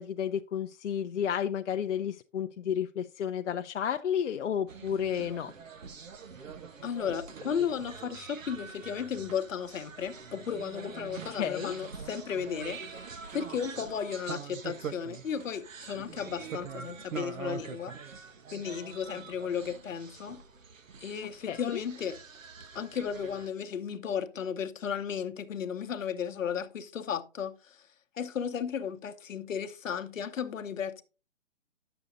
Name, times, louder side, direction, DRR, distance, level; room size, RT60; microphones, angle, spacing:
voice 1, 0.0-5.5 11.3-11.8 21.5-21.8, left 8 dB, 70° left, 0.5 m, -32 dB
sound 1, 4.7-23.5, right 6 dB, 90° right, 1.0 m, -44 dB
voice 2, 6.8-17.9 18.5-20.4 21.0-22.2 22.7-27.8 28.2-31.0, left 7 dB, 85° left, 0.9 m, -34 dB
10.5 x 6.9 x 2.5 m
hypercardioid pair, 180°, 38 cm